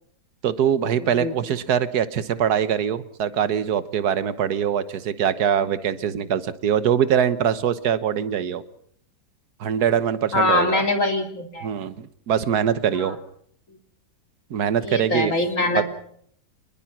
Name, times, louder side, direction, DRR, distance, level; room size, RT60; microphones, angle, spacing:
voice 1, 0.4-8.6 9.6-10.8 11.6-13.2 14.5-15.3 15.7-15.8, right 8 dB, 70° right, 14 dB, 1.6 m, -23 dB
voice 2, 10.3-11.7 14.8-15.8, left 2 dB, 50° left, 5 dB, 3.3 m, -23 dB
26.0 x 21.0 x 6.1 m, 0.66 s
omnidirectional pair, 1.8 m